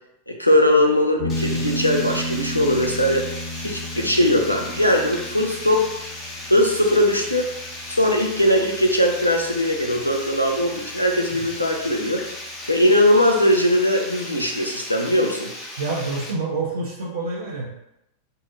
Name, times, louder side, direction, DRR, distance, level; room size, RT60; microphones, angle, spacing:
voice 1, 0.3-3.3 3.6-5.9 6.5-7.5 7.9-12.2 12.7-15.5, left 1 dB, 90° left, 2 dB, 0.4 m, -20 dB
sound 1, 1.2-10.2, equal, 45° left, 1.2 m, -33 dB
Water, 1.3-16.3, left 1 dB, 25° left, 0.8 m, -36 dB
voice 2, 15.8-17.7, right 3 dB, 65° right, -5 dB, 0.5 m, -27 dB
3.6 x 2.0 x 2.7 m, 0.84 s
figure-of-eight pair, 90°, 0 cm